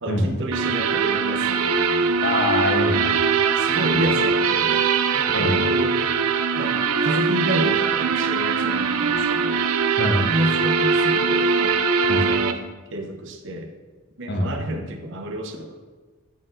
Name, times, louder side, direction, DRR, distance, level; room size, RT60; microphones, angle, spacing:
voice 1, 0.0-2.1 3.5-4.8 5.1-6.0 6.5-9.6 10.1-11.8 12.3-12.6 12.9-13.7 14.2-15.8, right 1 dB, 55° right, 4 dB, 0.8 m, -30 dB
sound 1, 0.5-12.5, right 5 dB, 80° right, 0.5 m, -21 dB
voice 2, 2.2-3.2 3.9-4.0 5.3-5.6 9.9-10.2 12.0-12.3 14.3-14.5, left 1 dB, 45° left, 2 dB, 1.0 m, -24 dB
9.2 x 4.3 x 3.8 m, 1.4 s
head